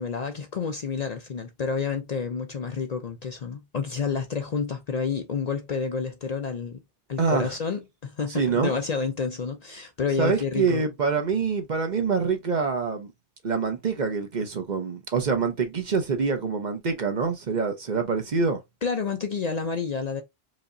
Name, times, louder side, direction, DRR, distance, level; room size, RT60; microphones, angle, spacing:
voice 1, 0.0-6.8 7.1-10.8 18.8-20.2, left 5 dB, 50° left, 0.6 m, -29 dB
voice 2, 7.2-7.5 8.3-8.7 10.2-13.1 13.4-18.6, right 5 dB, 50° right, 0.9 m, -25 dB
4.8 x 2.8 x 2.6 m
omnidirectional pair, 1.0 m